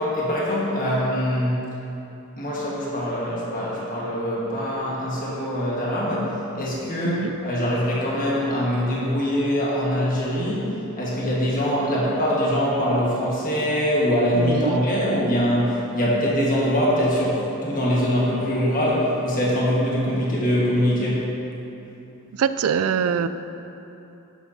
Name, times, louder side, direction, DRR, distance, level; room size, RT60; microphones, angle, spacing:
voice 1, 0.0-1.7 2.4-21.3, equal, 40° left, -6 dB, 1.5 m, -23 dB
voice 2, 7.0-7.4 14.3-14.9 22.3-23.3, right 7 dB, 75° right, 12 dB, 0.4 m, -24 dB
11.5 x 8.3 x 2.7 m, 2.9 s
head